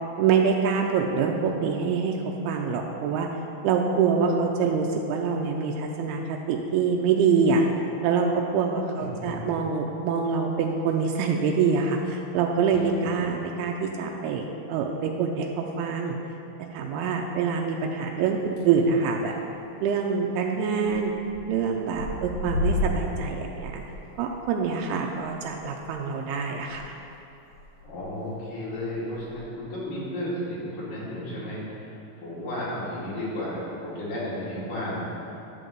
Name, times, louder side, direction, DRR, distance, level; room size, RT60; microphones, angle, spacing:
voice 1, 0.2-3.3 3.6-7.6 8.0-14.4 14.7-16.2 16.7-19.3 19.8-21.1 21.5-23.8 24.2-27.0, right 5 dB, 90° right, 1 dB, 2.6 m, -25 dB
voice 2, 8.9-9.5 13.1-13.4 27.8-32.0 32.2-35.0, left 1 dB, 60° left, -9 dB, 4.1 m, -33 dB
sound 1, 18.4-18.8 19.1-19.5 19.7-19.8 20.0-20.1 20.9-21.4 21.7-26.8 27.1-27.2 27.5-28.0 28.7-29.4, left 1 dB, 45° left, 3.2 m, -33 dB
10.5 x 4.0 x 7.6 m, 2.8 s
omnidirectional pair, 4.5 m